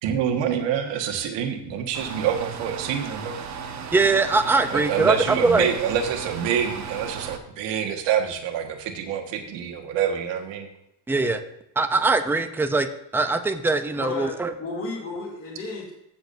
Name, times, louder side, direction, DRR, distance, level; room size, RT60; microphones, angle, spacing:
voice 1, 0.0-3.4 4.7-10.7, right 8 dB, 85° right, 4 dB, 1.6 m, -26 dB
sound 1, 1.9-7.4, right 6 dB, 40° right, 1.0 m, -36 dB
voice 2, 3.9-5.1 5.4-5.7 11.1-11.4 11.8-12.9 13.1-14.5, right 3 dB, 5° right, 8 dB, 0.5 m, -21 dB
voice 3, 14.0-15.9, left 3 dB, 30° left, -3 dB, 2.5 m, -33 dB
15.5 x 7.1 x 2.7 m, 0.83 s
cardioid pair, 145°, 42 cm